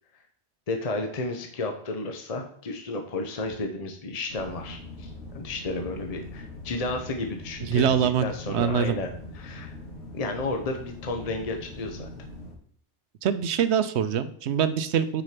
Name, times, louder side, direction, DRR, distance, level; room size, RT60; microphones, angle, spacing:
voice 1, 0.7-9.7 10.1-12.1, left 2 dB, 35° left, 4 dB, 0.9 m, -32 dB
sound 1, 4.3-12.5, left 2 dB, 70° left, 1.9 m, -42 dB
voice 2, 7.7-8.2 8.5-9.0 13.2-15.2, right 8 dB, 75° right, 13 dB, 0.9 m, -24 dB
6.4 x 5.1 x 5.8 m, 0.64 s
omnidirectional pair, 1.2 m